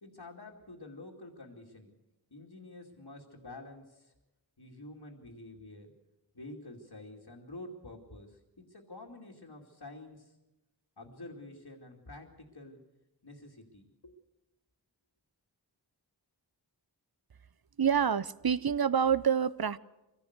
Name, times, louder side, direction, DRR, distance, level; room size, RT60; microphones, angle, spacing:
voice 1, 0.0-1.9 2.3-4.1 4.6-5.9 6.3-10.4 11.0-12.8 13.2-14.1, left 2 dB, 70° left, -2 dB, 2.6 m, -48 dB
voice 2, 17.8-19.8, right 7 dB, 55° right, 17 dB, 0.8 m, -27 dB
23.5 x 17.0 x 8.1 m, 1.0 s
wide cardioid pair, 55°, 43 cm